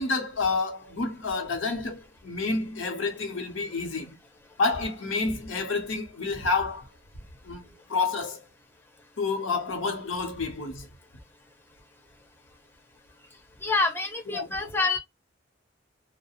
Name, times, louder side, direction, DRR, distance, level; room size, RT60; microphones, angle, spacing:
voice 1, 0.0-4.2 4.6-6.9 7.4-8.5 9.2-10.9 14.3-14.7, left 3 dB, 85° left, 0.8 m, -29 dB
voice 2, 13.6-15.0, left 3 dB, 10° left, 0.5 m, -26 dB
2.4 x 2.1 x 2.8 m
head